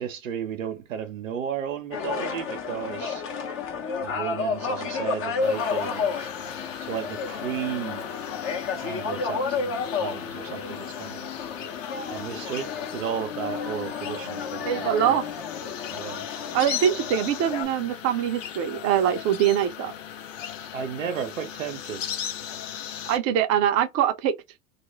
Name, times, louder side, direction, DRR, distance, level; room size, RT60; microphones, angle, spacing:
voice 1, 0.0-3.2 4.0-6.3 6.8-8.0 8.8-11.3 12.1-15.2 15.9-16.3 20.7-22.0, right 8 dB, 90° right, 0.6 m, -34 dB
sound 1, 1.9-17.6, left 5 dB, 35° left, 0.8 m, -31 dB
sound 2, 5.4-23.2, left 9 dB, 80° left, 0.7 m, -38 dB
voice 2, 14.7-15.2 16.5-19.9 23.1-24.3, right 10 dB, 40° right, 0.6 m, -23 dB
2.4 x 2.1 x 3.1 m
hypercardioid pair, 90°, 38 cm